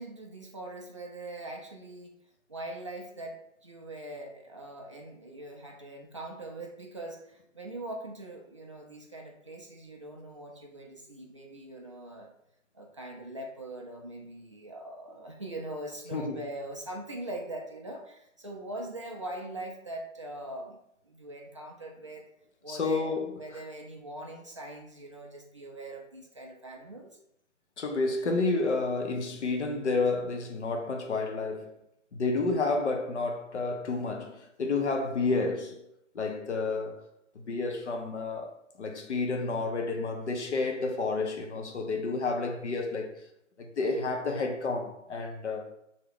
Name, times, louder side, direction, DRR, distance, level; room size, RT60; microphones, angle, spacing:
voice 1, 0.0-2.2 2.5-12.3 12.7-20.8 21.0-22.3 22.6-27.1, right 1 dB, 25° right, 0.4 m, -42 dB
voice 2, 16.1-16.4 22.7-23.4 27.8-31.8 32.1-35.9 36.1-37.1 37.5-38.5 38.8-43.2 43.6-45.7, left 3 dB, 60° left, 0.8 m, -30 dB
3.6 x 2.8 x 3.4 m
figure-of-eight pair, 135°, 39 cm